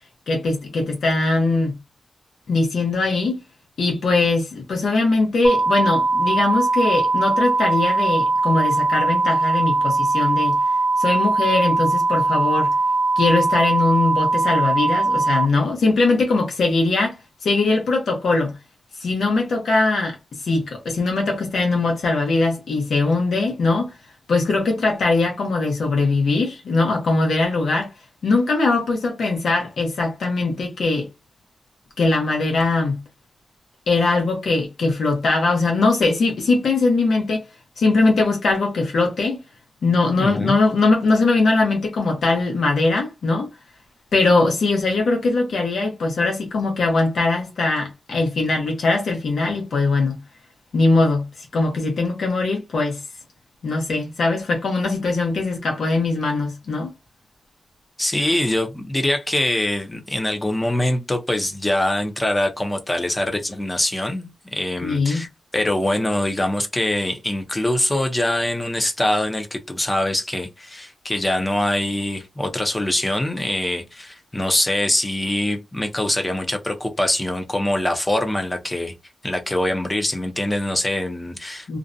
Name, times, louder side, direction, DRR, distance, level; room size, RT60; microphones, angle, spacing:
voice 1, 0.3-1.8 2.5-3.4 3.8-10.6 11.0-12.7 13.2-18.6 19.0-24.0 24.3-27.9 28.2-31.1 32.0-33.0 33.9-37.4 37.8-39.4 39.8-43.5 44.1-50.2 50.7-53.0 53.6-56.9 64.8-65.3 81.7-81.8, left 3 dB, 90° left, 0.8 m, -21 dB
sound 1, 5.4-15.5, right 3 dB, 55° right, 0.5 m, -20 dB
voice 2, 40.2-40.6 58.0-65.3 65.5-78.9 79.2-81.8, left 1 dB, 15° left, 0.5 m, -23 dB
2.4 x 2.1 x 2.5 m
wide cardioid pair, 155°, 0 cm